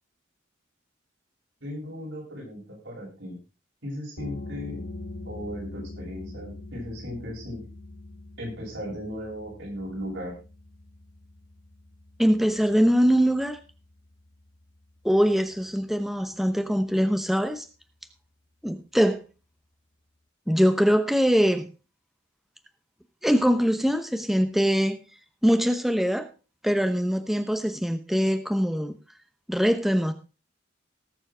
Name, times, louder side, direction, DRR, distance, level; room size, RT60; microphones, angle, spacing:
voice 1, 1.6-3.4 3.8-4.8 5.2-7.6 8.4-10.3, equal, 75° right, -2 dB, 8.0 m, -36 dB
sound 1, 4.2-15.5, left 2 dB, 85° left, 1.8 m, -43 dB
voice 2, 12.2-13.6 15.0-17.7 18.6-19.2 20.5-21.7 23.2-25.0 25.4-26.3 26.6-28.9 29.5-30.1, equal, ahead, 8 dB, 0.9 m, -22 dB
18.5 x 7.2 x 3.8 m, 0.32 s
head